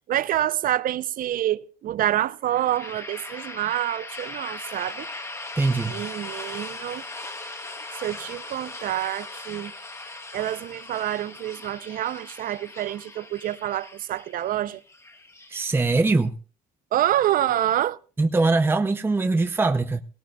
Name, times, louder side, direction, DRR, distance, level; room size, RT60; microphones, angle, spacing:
voice 1, 0.1-5.1 5.9-7.0 8.0-9.7 10.3-14.8 16.9-18.0, right 12 dB, 55° right, 0.6 m, -27 dB
sound 1, 2.4-16.2, left 2 dB, 15° left, 1.6 m, -39 dB
voice 2, 5.6-5.9 15.5-16.3 18.2-20.0, right 3 dB, 15° right, 0.6 m, -22 dB
18.5 x 18.0 x 2.3 m
cardioid pair, 110°, 17 cm